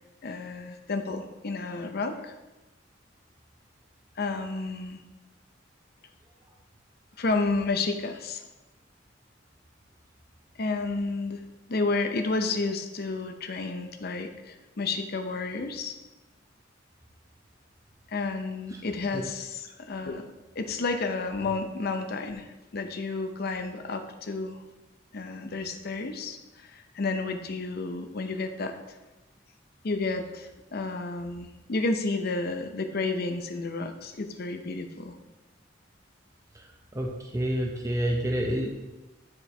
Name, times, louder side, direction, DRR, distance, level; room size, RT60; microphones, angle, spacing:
voice 1, 0.2-2.3 4.2-5.0 7.2-8.5 10.6-11.4 11.7-15.9 18.1-20.2 20.6-24.6 25.1-28.7 29.8-35.2, left 3 dB, 55° left, 6 dB, 0.7 m, -31 dB
voice 2, 36.9-38.8, equal, 15° right, 1 dB, 0.7 m, -29 dB
9.5 x 4.5 x 3.3 m, 1.0 s
head